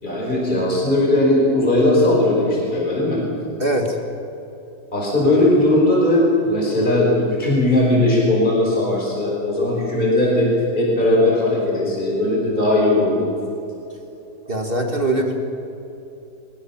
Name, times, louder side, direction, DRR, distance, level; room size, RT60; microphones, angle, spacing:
voice 1, 0.0-3.2 4.9-10.5 10.8-13.3, left 1 dB, 25° left, -3 dB, 5.3 m, -18 dB
voice 2, 3.6-4.0 14.5-15.4, right 1 dB, 30° right, 3 dB, 2.2 m, -21 dB
23.0 x 22.0 x 7.3 m, 3.0 s
omnidirectional pair, 2.0 m